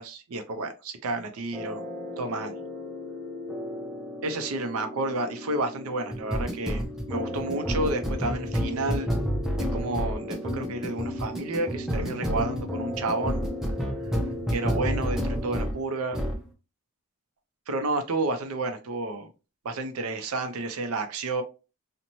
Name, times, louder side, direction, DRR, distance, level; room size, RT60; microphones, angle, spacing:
voice 1, 0.0-1.8 2.2-2.5 4.2-9.1 9.6-13.5 14.5-16.2 17.7-19.3 19.6-21.4, right 2 dB, 75° right, 0.5 m, -31 dB
sound 1, 1.5-15.8 16.1-16.4, equal, ahead, 0.4 m, -31 dB
2.6 x 2.1 x 2.9 m
head